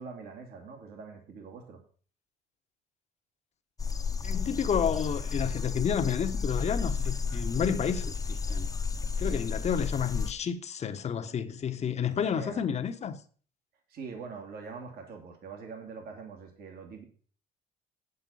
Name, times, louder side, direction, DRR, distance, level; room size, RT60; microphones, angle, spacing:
voice 1, 0.0-1.8 9.2-9.4 12.3-12.7 13.9-17.0, right 5 dB, 65° right, 2.3 m, -43 dB
sound 1, 3.8-10.3, left 5 dB, 20° left, 0.9 m, -32 dB
voice 2, 4.2-8.7 9.2-13.2, left 7 dB, 40° left, 1.0 m, -30 dB
8.4 x 7.8 x 5.5 m
cardioid pair, 110°, 17 cm